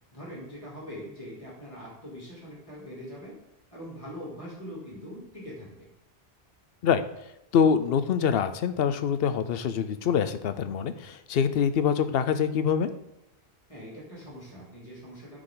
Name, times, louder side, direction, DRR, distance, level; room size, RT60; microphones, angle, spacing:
voice 1, 0.1-3.3 3.7-5.8 13.7-15.4, equal, 30° left, -6 dB, 2.8 m, -42 dB
voice 2, 7.5-12.9, left 7 dB, 70° left, 11 dB, 0.8 m, -25 dB
13.0 x 4.9 x 3.8 m, 0.86 s
omnidirectional pair, 1.0 m